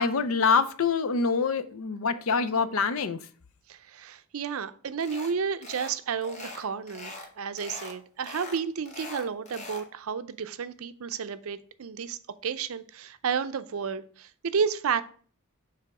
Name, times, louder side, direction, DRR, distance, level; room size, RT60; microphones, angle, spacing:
voice 1, 0.0-3.2, left 5 dB, 70° left, 0.5 m, -25 dB
voice 2, 3.7-15.0, right 6 dB, 70° right, 0.5 m, -32 dB
sound 1, 5.0-5.3 5.6-6.0 6.2-7.3 7.6-8.0 8.2-9.9, left 3 dB, 30° left, 1.0 m, -42 dB
6.8 x 3.5 x 4.8 m
head